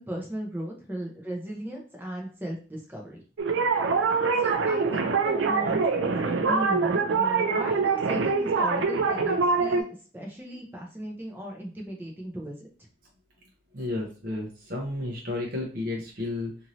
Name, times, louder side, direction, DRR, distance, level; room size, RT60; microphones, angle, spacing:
voice 1, 0.0-3.2 4.4-9.8 10.1-12.7, right 1 dB, 10° right, -1 dB, 0.6 m, -36 dB
sound 1, 3.4-9.8, right 4 dB, 85° right, 0.4 m, -24 dB
voice 2, 13.7-16.6, left 2 dB, 50° right, -2 dB, 0.7 m, -32 dB
2.6 x 2.6 x 3.0 m, 0.39 s
head